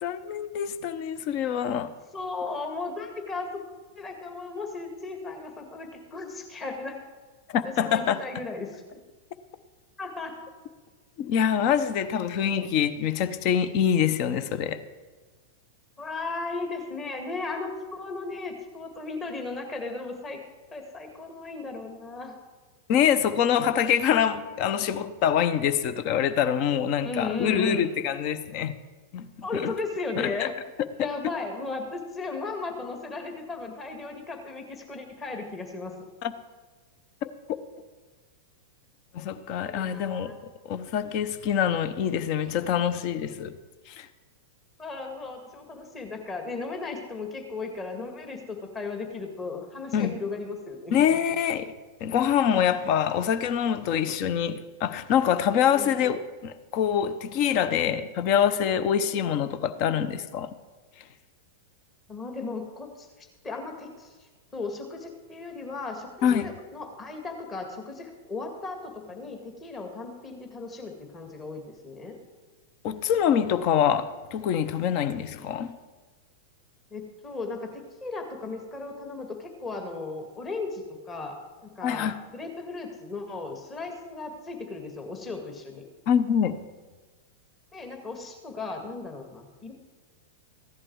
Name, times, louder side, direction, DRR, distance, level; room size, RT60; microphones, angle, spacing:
voice 1, 0.0-1.9 7.5-8.2 11.2-14.8 22.9-28.7 29.1-29.3 29.5-29.7 30.2-30.5 36.2-36.3 37.2-37.3 39.1-40.3 40.6-43.5 43.9-44.1 49.9-50.1 50.9-51.7 52.0-60.5 66.2-66.5 72.8-75.8 81.8-82.2 86.1-86.6, left 8 dB, 50° left, 0.8 m, -25 dB
voice 2, 2.1-3.5 4.0-7.0 7.6-9.0 10.0-10.4 16.0-20.4 20.7-22.4 27.0-27.9 29.4-30.5 31.0-36.0 39.6-40.4 44.8-51.0 55.7-55.9 62.1-64.2 64.5-72.2 76.9-85.9 87.7-89.7, left 3 dB, 25° left, 2.0 m, -36 dB
15.0 x 11.0 x 4.7 m
figure-of-eight pair, 95°, 0 cm